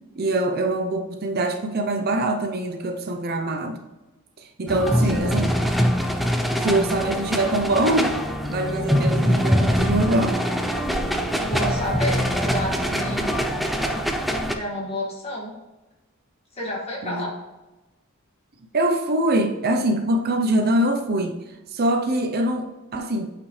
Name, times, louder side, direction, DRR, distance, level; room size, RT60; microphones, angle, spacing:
voice 1, 0.2-3.8 4.6-5.5 6.6-8.2 8.5-10.4 17.0-17.3 18.7-21.4 21.7-23.3, right 1 dB, 45° right, 5 dB, 0.7 m, -23 dB
sound 1, 4.7-14.5, equal, ahead, 0.5 m, -23 dB
voice 2, 4.8-5.4 11.4-13.3 14.5-15.6 16.5-17.3, left 1 dB, 30° left, -2 dB, 2.0 m, -30 dB
8.5 x 5.0 x 3.2 m, 1.1 s
head